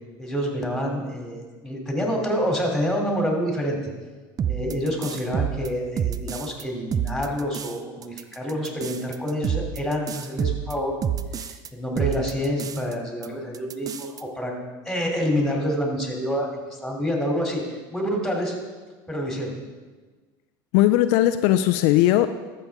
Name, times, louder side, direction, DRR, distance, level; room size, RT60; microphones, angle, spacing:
voice 1, 0.2-3.8 4.5-10.9 11.4-14.5 14.8-17.6 17.9-18.5 19.1-19.5, equal, ahead, 0 dB, 3.0 m, -27 dB
sound 1, 4.4-6.6 6.9-7.7 8.0-11.7 12.0-12.9 13.2-13.3 13.5-14.2, right 8 dB, 30° right, 0.5 m, -28 dB
voice 2, 20.7-22.3, left 14 dB, 70° left, 10 dB, 0.4 m, -18 dB
13.5 x 6.7 x 3.6 m, 1.3 s
hypercardioid pair, 85°, 12 cm